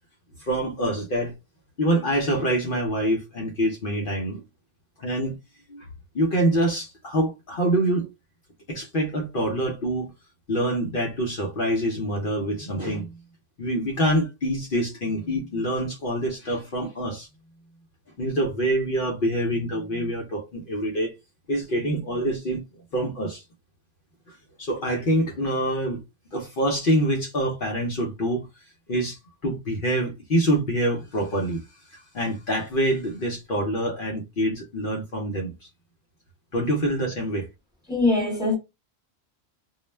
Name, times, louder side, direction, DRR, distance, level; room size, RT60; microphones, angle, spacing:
voice 1, 0.4-1.3 1.8-4.4 5.0-5.4 5.7-5.9 6.1-8.1 8.7-10.1 10.5-13.2 13.6-17.3 18.2-21.1 21.5-22.6 22.9-23.4 24.3-26.0 26.3-28.5 28.9-31.6 31.9-35.5 36.5-37.5, right 1 dB, 55° left, 0.8 m, -25 dB
voice 2, 37.9-38.5, left 2 dB, 5° right, 1.0 m, -22 dB
2.4 x 2.1 x 3.1 m
omnidirectional pair, 1.1 m